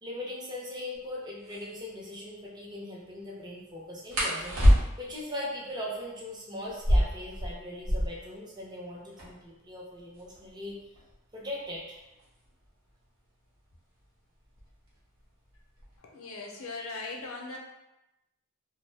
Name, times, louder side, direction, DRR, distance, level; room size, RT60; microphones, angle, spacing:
voice 1, 0.0-10.8 11.3-12.1, left 1 dB, 20° right, -4 dB, 0.5 m, -40 dB
sound 1, 0.9-1.0 1.4-1.7 4.1-5.2 6.7-8.3 8.6-8.7 8.9-9.5 10.1-12.7 13.7-14.0 14.4-14.9 15.2-16.0, equal, 85° right, 0.9 m, -26 dB
voice 2, 16.0-17.6, left 3 dB, 85° left, 1 dB, 0.5 m, -39 dB
2.6 x 2.0 x 3.2 m, 0.96 s
head